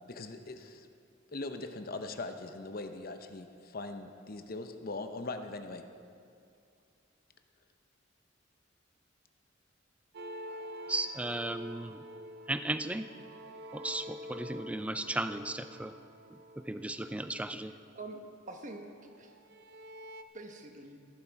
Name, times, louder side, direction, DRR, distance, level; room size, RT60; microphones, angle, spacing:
voice 1, 0.1-0.9 1.3-5.8, left 2 dB, 50° left, 7 dB, 0.8 m, -41 dB
sound 1, 10.1-17.9 18.9-20.2, equal, 60° right, 0.6 m, -47 dB
voice 2, 10.9-12.0 12.5-13.1 13.7-15.9 16.3-17.8, right 1 dB, 5° right, 10 dB, 0.4 m, -35 dB
voice 3, 17.9-19.4 20.3-21.0, right 2 dB, 40° right, 4 dB, 1.2 m, -46 dB
15.0 x 11.5 x 4.7 m, 2.4 s
head